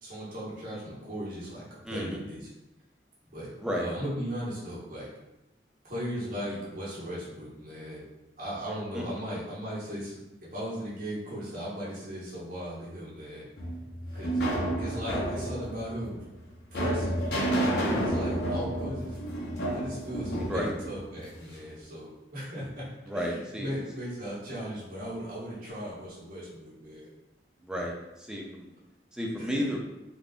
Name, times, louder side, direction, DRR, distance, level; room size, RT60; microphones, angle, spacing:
voice 1, 0.0-2.5 3.3-5.1 5.8-8.0 8.4-13.5 14.1-14.4 14.8-16.3 16.7-19.2 19.7-22.9 23.1-27.1 29.4-29.5, equal, 55° right, -7 dB, 1.2 m, -37 dB
voice 2, 1.9-2.2 3.6-3.9 8.9-9.0 20.3-20.7 23.1-23.7 27.6-27.9 28.3-28.7 29.1-29.8, equal, 5° right, -1 dB, 0.4 m, -32 dB
sound 1, 13.6-21.7, right 1 dB, 65° left, 0.7 m, -30 dB
3.4 x 2.5 x 2.4 m, 0.95 s
head